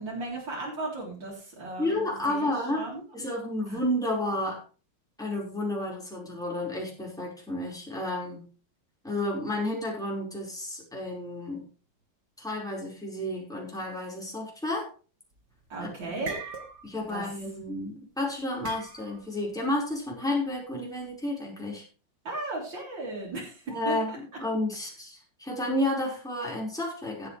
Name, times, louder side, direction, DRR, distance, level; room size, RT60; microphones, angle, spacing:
voice 1, 0.0-3.0 3.6-3.8 15.7-16.4 17.1-17.3 22.2-24.2, right 2 dB, 85° right, -4 dB, 4.6 m, -36 dB
voice 2, 1.8-2.9 3.1-4.6 5.2-8.5 9.0-11.6 12.4-14.9 15.8-16.2 16.8-21.8 23.7-27.3, left 1 dB, ahead, -4 dB, 4.9 m, -31 dB
sound 1, 15.4-15.7 16.0-17.1 17.4-17.6 18.6-19.3, right 4 dB, 65° right, 2.5 m, -40 dB
16.5 x 9.4 x 3.3 m, 0.35 s
omnidirectional pair, 2.0 m